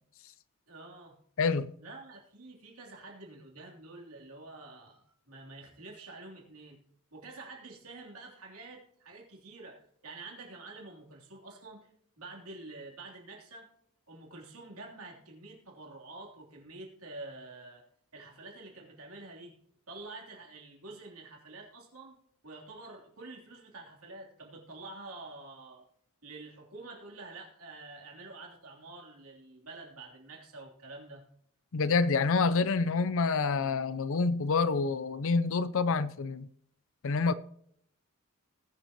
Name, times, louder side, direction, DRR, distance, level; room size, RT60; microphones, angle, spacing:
voice 1, 0.7-1.2 1.8-6.8 7.1-11.9 12.2-13.7 14.1-17.8 18.1-19.6 19.9-22.1 22.4-25.8 26.2-31.2, right 2 dB, 75° right, 3.2 m, -48 dB
voice 2, 31.7-36.5 37.0-37.3, left 4 dB, 65° left, 0.6 m, -27 dB
20.0 x 7.1 x 2.9 m
head